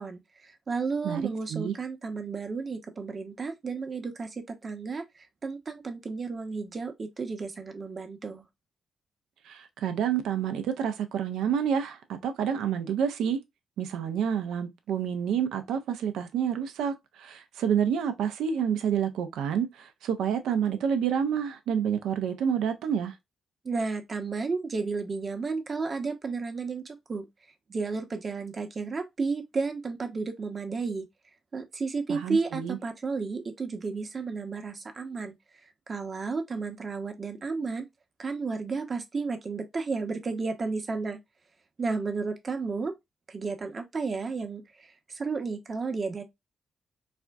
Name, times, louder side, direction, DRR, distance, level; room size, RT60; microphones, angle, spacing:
voice 1, 0.0-8.4 23.6-27.3 27.7-31.1 31.5-35.4 35.9-37.9 38.2-41.2 41.8-42.9 43.3-46.2, right 4 dB, 45° right, 0.9 m, -32 dB
voice 2, 9.5-13.4 13.8-23.1 32.1-32.8, right 8 dB, 75° right, 0.6 m, -28 dB
4.2 x 2.4 x 2.3 m
hypercardioid pair, 40°, 0 cm